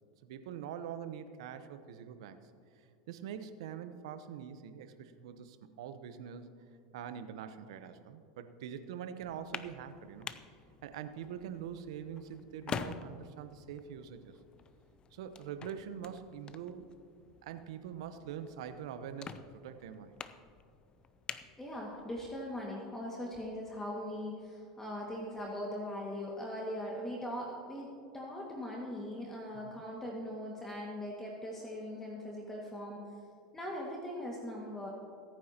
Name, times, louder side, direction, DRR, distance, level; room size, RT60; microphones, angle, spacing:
voice 1, 0.2-2.4 3.1-6.5 6.9-10.3 10.8-14.4 15.1-16.9 17.4-20.2 29.5-29.8, right 8 dB, 75° right, 10 dB, 1.0 m, -44 dB
sound 1, 9.2-22.3, left 6 dB, 30° left, 0.6 m, -47 dB
voice 2, 21.6-27.9 28.1-33.1 33.5-34.9, left 1 dB, 15° left, -2 dB, 2.0 m, -40 dB
24.5 x 9.3 x 3.0 m, 2.4 s
hypercardioid pair, 100°, 3 cm